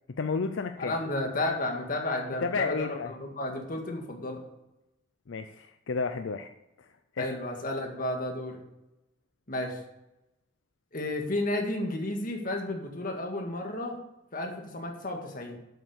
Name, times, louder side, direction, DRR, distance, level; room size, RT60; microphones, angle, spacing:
voice 1, 0.2-1.0 2.4-3.1 5.3-6.5 7.1-7.3, left 4 dB, 75° left, 8 dB, 0.5 m, -31 dB
voice 2, 0.8-4.4 7.2-8.6 9.5-9.8 10.9-14.0 14.3-15.6, left 1 dB, 45° left, 2 dB, 1.8 m, -32 dB
8.1 x 8.0 x 6.6 m, 0.93 s
head